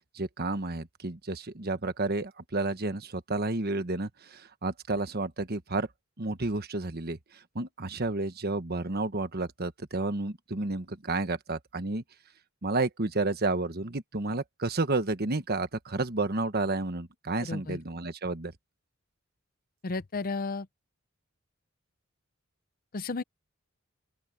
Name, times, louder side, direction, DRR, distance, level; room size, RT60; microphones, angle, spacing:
voice 1, 0.1-5.9 6.2-7.2 7.5-12.0 12.6-18.5, right 2 dB, 50° right, 1.3 m, -31 dB
voice 2, 17.4-17.8 19.8-20.7 22.9-23.2, left 3 dB, 45° left, 0.7 m, -33 dB
open air
head